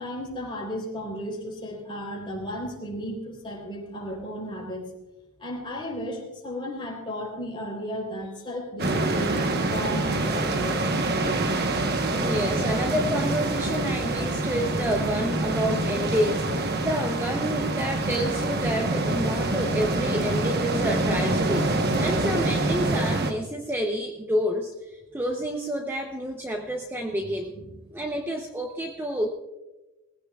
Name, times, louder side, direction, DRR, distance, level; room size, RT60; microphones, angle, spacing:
voice 1, 0.0-4.9 5.4-11.1 27.1-27.6, equal, 20° left, 0 dB, 3.6 m, -34 dB
sound 1, 8.8-23.3, right 2 dB, 45° right, 1.1 m, -26 dB
voice 2, 12.1-27.5 27.9-29.3, equal, 10° right, 2 dB, 0.7 m, -29 dB
19.5 x 16.0 x 2.4 m, 1.1 s
head